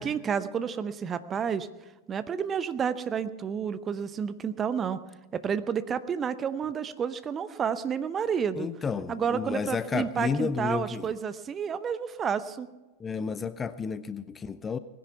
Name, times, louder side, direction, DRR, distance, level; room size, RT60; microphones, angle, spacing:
voice 1, 0.0-1.7 2.1-5.0 5.3-8.7 9.1-12.7, right 7 dB, 25° right, 14 dB, 0.8 m, -30 dB
voice 2, 8.5-11.1 13.0-14.8, left 5 dB, 20° left, 15 dB, 0.5 m, -31 dB
19.5 x 10.5 x 5.8 m, 1.1 s
figure-of-eight pair, 90°, 0 cm